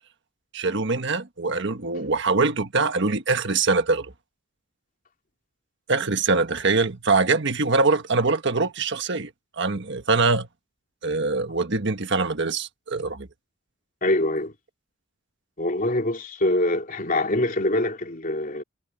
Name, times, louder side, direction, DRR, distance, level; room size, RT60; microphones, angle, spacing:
voice 1, 0.5-4.1 5.9-9.3 9.6-10.5 11.0-13.3, right 3 dB, 65° right, 1.5 m, -23 dB
voice 2, 14.0-14.5 15.6-18.6, left 1 dB, 45° left, 3.2 m, -24 dB
head